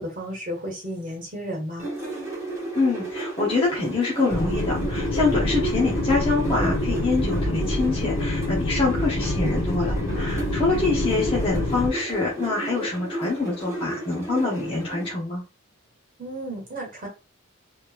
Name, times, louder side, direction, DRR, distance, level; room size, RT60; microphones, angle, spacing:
voice 1, 0.0-1.9 16.2-17.1, equal, 40° right, -3 dB, 1.4 m, -33 dB
sound 1, 1.8-15.1, right 2 dB, 15° right, 1.3 m, -33 dB
voice 2, 2.7-15.4, left 3 dB, 25° left, -5 dB, 0.9 m, -25 dB
sound 2, 4.3-11.9, left 1 dB, 75° left, 1.1 m, -26 dB
3.4 x 3.1 x 2.5 m, 0.29 s
head